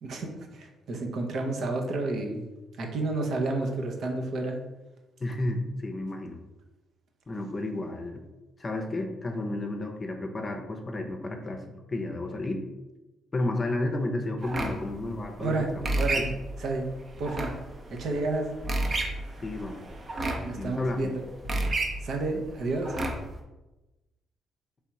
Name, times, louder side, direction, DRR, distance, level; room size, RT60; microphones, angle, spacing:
voice 1, 0.0-2.5 2.8-4.6 15.4-16.3 16.6-16.9 17.2-17.5 17.9-18.5 20.4-21.2 22.0-22.9, right 2 dB, 70° right, 2 dB, 0.8 m, -30 dB
voice 2, 5.2-6.4 7.3-8.2 8.6-12.6 13.3-15.9 16.2-16.3 19.4-19.8 20.6-21.1, left 2 dB, 30° left, 4 dB, 0.6 m, -32 dB
sound 1, 14.4-23.4, right 2 dB, 40° right, 0.8 m, -32 dB
3.4 x 2.8 x 4.6 m, 1.1 s
cardioid pair, 90°, 0 cm